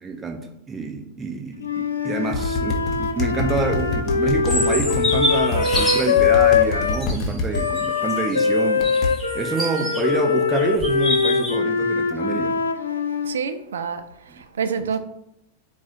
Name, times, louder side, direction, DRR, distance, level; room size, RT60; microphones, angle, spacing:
voice 1, 0.0-8.9 9.3-12.6, right 4 dB, 20° right, 0.6 m, -27 dB
Wind instrument woodwind instrument, 1.6-7.0 7.5-13.4, left 5 dB, 75° left, 0.3 m, -22 dB
sound 1, 2.3-5.8 6.2-7.6 8.8-9.1, left 3 dB, 30° left, 0.7 m, -26 dB
sound 2, 4.5-6.2 6.9-10.1 10.5-11.6, left 1 dB, ahead, 1.1 m, -27 dB
voice 2, 13.2-15.0, right 6 dB, 65° right, 0.3 m, -28 dB
4.0 x 2.4 x 4.5 m
figure-of-eight pair, 90°, 0 cm